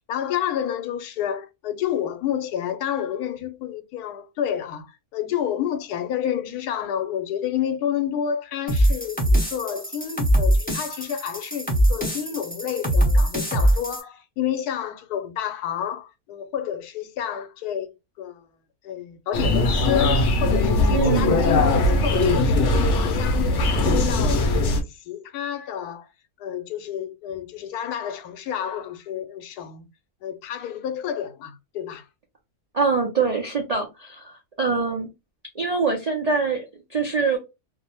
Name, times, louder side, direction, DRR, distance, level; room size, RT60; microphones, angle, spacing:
voice 1, 0.1-17.9 18.2-18.5 18.8-23.6 23.8-26.1 26.4-29.9 30.2-32.1, left 9 dB, 90° left, 1.1 m, -29 dB
sound 1, 8.7-14.0, equal, 10° left, 0.6 m, -22 dB
sound 2, 19.3-24.8, left 2 dB, 65° left, 0.8 m, -20 dB
voice 2, 20.9-21.4 32.7-35.1 35.5-37.4, right 4 dB, 65° right, 0.4 m, -24 dB
2.7 x 2.0 x 2.8 m
omnidirectional pair, 1.6 m